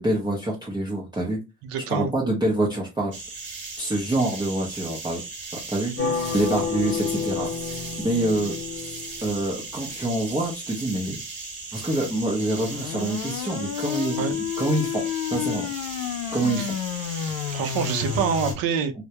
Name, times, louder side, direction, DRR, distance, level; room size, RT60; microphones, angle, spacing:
voice 1, 0.0-1.4 1.9-3.1 3.8-5.2 5.7-8.5 9.2-11.2 11.7-15.0 15.3-15.7 16.3-16.7, right 1 dB, 10° right, 0.6 m, -26 dB
voice 2, 1.6-2.1 6.0-6.1 14.2-14.4 16.6-16.7 17.5-18.9, right 6 dB, 75° right, 0.6 m, -26 dB
sound 1, 3.1-18.5, right 3 dB, 35° right, 1.0 m, -37 dB
sound 2, 6.0-9.7, left 6 dB, 35° left, 0.9 m, -30 dB
sound 3, 12.6-18.5, left 11 dB, 75° left, 0.5 m, -30 dB
2.2 x 2.1 x 2.7 m
cardioid pair, 115°, 35 cm